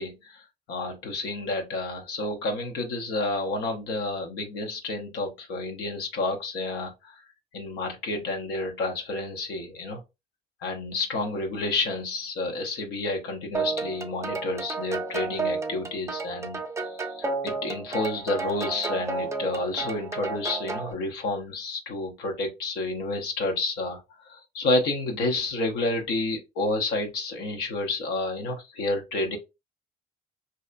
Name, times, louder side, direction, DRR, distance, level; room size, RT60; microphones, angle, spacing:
voice 1, 0.0-7.2 7.5-10.0 10.6-29.4, left 2 dB, 85° left, 0.7 m, -30 dB
sound 1, 13.5-20.9, right 4 dB, 15° right, 0.4 m, -32 dB
2.7 x 2.2 x 2.4 m
cardioid pair, 110°, 17 cm